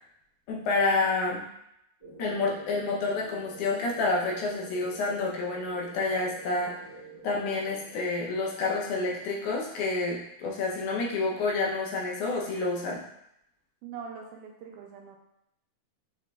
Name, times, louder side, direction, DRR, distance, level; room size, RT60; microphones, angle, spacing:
voice 1, 0.5-1.4 2.2-6.9 7.2-13.0, left 3 dB, 75° left, -2 dB, 2.1 m, -29 dB
sound 1, 2.0-9.3, right 1 dB, 30° left, 1.0 m, -47 dB
voice 2, 13.8-15.2, right 6 dB, 85° right, 1 dB, 2.1 m, -42 dB
5.8 x 3.0 x 2.2 m, 0.77 s
omnidirectional pair, 3.7 m